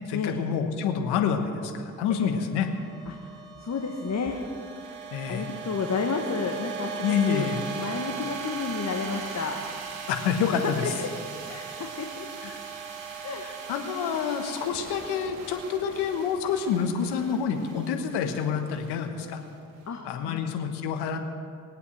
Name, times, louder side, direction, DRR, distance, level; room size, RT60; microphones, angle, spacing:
voice 1, 0.1-2.7 5.1-5.5 7.0-7.6 10.1-10.9 12.4-12.6 13.4-19.4 20.0-21.2, left 7 dB, 75° left, 6 dB, 1.3 m, -28 dB
sound 1, 1.5-19.8, right 6 dB, 85° right, 1.5 m, -39 dB
voice 2, 3.1-4.3 5.3-9.6 10.6-11.1 11.4-12.3 13.2-13.4 19.9-20.0 20.2-20.5, left 5 dB, 40° left, 2 dB, 1.4 m, -31 dB
21.0 x 8.4 x 6.3 m, 2.4 s
hypercardioid pair, 40°, 40 cm